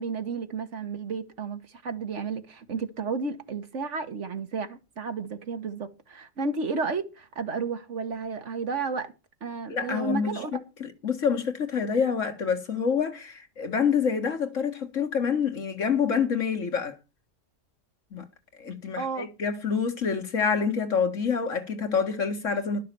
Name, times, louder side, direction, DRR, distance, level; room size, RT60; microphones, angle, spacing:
voice 1, 0.0-9.1 9.4-10.6 19.0-19.3, right 4 dB, 70° right, 1.7 m, -32 dB
voice 2, 9.7-10.4 10.8-17.0 18.1-18.2 18.6-22.8, left 6 dB, 75° left, 2.0 m, -27 dB
12.0 x 6.7 x 6.9 m
omnidirectional pair, 1.3 m